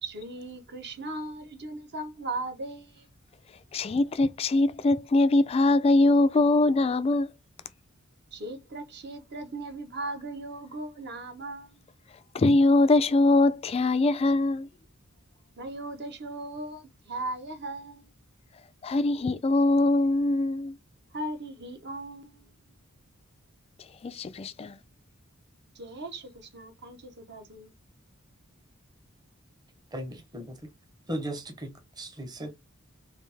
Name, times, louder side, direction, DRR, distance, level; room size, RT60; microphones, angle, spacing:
voice 1, 0.0-3.1 8.3-11.8 15.6-18.1 21.1-22.5 25.7-27.7, right 2 dB, 50° right, 1.0 m, -38 dB
voice 2, 3.7-7.3 12.3-14.7 18.8-20.7 24.0-24.8, left 2 dB, 30° left, 0.3 m, -22 dB
voice 3, 29.9-30.6 31.1-32.5, right 1 dB, 20° right, 0.8 m, -36 dB
3.2 x 2.6 x 3.3 m
head